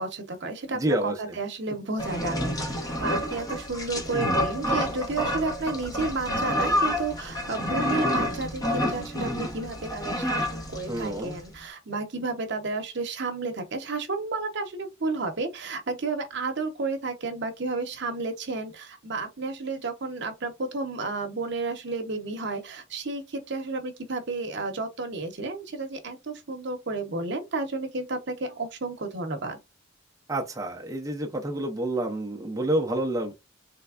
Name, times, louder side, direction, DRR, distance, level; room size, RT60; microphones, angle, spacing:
voice 1, 0.0-29.6, right 3 dB, 60° right, 0.8 m, -32 dB
voice 2, 0.7-1.2 10.9-11.4 30.3-33.3, right 1 dB, 15° right, 0.5 m, -28 dB
sound 1, 2.0-11.4, left 1 dB, 20° left, 0.8 m, -28 dB
3.3 x 3.2 x 2.4 m
head